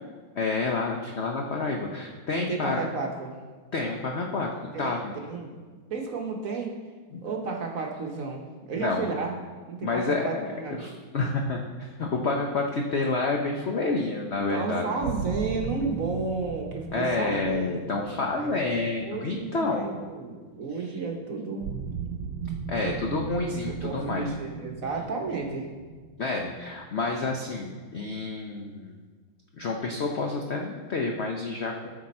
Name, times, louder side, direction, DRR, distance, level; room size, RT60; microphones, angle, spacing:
voice 1, 0.3-2.8 3.7-4.5 4.8-5.1 7.1-7.2 8.7-9.1 9.8-10.5 10.8-14.8 16.9-19.8 22.7-24.2 26.2-29.0 29.5-31.9, left 3 dB, 80° left, 1 dB, 0.5 m, -29 dB
voice 2, 2.5-3.3 4.7-5.5 5.9-6.8 7.2-10.9 14.5-21.7 23.7-25.7, right 4 dB, 55° right, 1 dB, 1.1 m, -33 dB
sound 1, 15.0-20.0 21.6-27.3, right 6 dB, 75° right, 1.2 m, -37 dB
14.0 x 5.1 x 4.2 m, 1.5 s
omnidirectional pair, 2.1 m